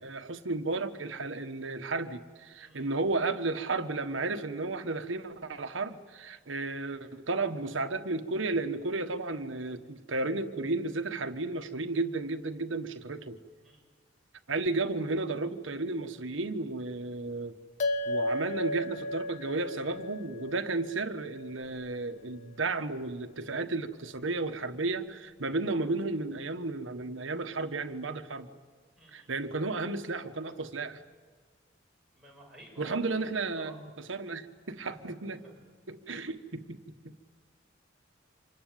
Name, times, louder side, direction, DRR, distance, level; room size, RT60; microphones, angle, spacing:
voice 1, 0.0-13.4 14.5-17.5 18.1-28.5 29.1-31.0 32.8-33.8 34.1-35.4 35.9-36.8 37.0-37.2, right 3 dB, 80° right, 8 dB, 1.4 m, -33 dB
voice 2, 2.6-3.0 13.6-13.8 29.0-29.3 32.1-33.3 33.5-33.8 34.9-35.6, equal, ahead, -3 dB, 7.5 m, -52 dB
sound 1, 17.8-22.5, left 1 dB, 35° left, 1.2 m, -35 dB
26.5 x 21.5 x 9.2 m, 1.5 s
head